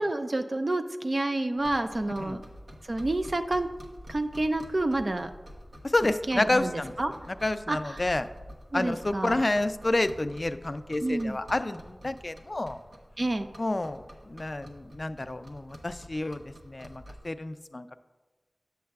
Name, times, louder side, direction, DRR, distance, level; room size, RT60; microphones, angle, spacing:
voice 1, 0.0-2.4 2.8-3.7 4.1-5.3 6.3-7.1 7.7-8.0 8.7-9.4 11.0-11.4 13.2-13.5, right 2 dB, 50° right, 7 dB, 0.3 m, -29 dB
sound 1, 1.6-17.3, equal, 80° right, 0.9 m, -48 dB
voice 2, 5.8-6.9 7.3-8.3 8.7-12.8 13.6-18.0, left 2 dB, 45° left, 11 dB, 0.3 m, -29 dB
8.5 x 7.3 x 2.3 m, 1.2 s
wide cardioid pair, 55°, 0 cm